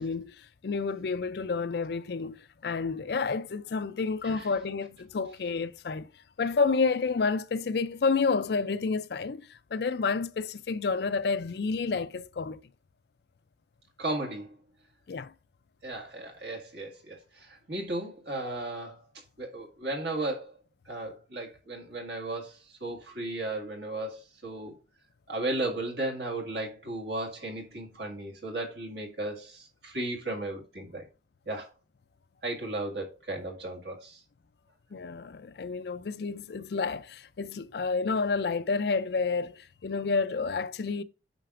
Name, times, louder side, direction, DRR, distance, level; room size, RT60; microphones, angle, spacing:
voice 1, 0.0-6.1 6.4-12.6 15.1-15.3 34.9-41.0, left 4 dB, 60° left, 0.4 m, -30 dB
voice 2, 14.0-14.5 15.8-19.0 19.4-20.5 20.9-24.7 25.3-31.1 31.5-31.7 32.4-34.2, right 2 dB, 65° right, 1.8 m, -35 dB
8.9 x 5.8 x 2.5 m
head